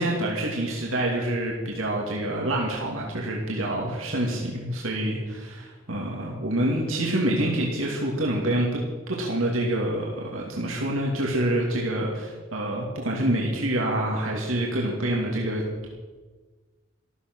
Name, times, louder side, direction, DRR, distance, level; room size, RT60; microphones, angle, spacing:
voice 1, 0.0-8.8 9.1-15.9, right 1 dB, 85° right, -2 dB, 2.5 m, -27 dB
14.0 x 13.5 x 6.2 m, 1.4 s
head